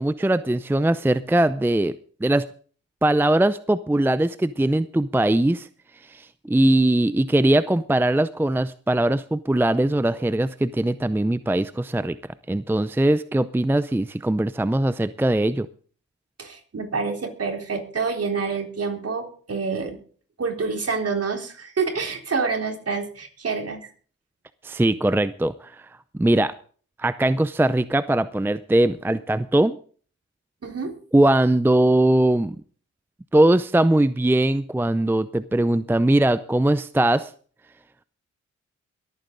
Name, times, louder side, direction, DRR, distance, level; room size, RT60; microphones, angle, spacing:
voice 1, 0.0-2.5 3.0-5.7 6.1-12.2 12.5-15.7 24.6-25.7 26.2-26.5 27.0-29.8 31.1-32.6 33.3-37.3, right 1 dB, 5° right, 15 dB, 0.5 m, -21 dB
voice 2, 16.4-20.0 20.4-23.9 30.6-30.9, right 4 dB, 50° right, 3 dB, 3.9 m, -27 dB
22.5 x 9.1 x 3.9 m, 0.43 s
cardioid pair, 60°, 30 cm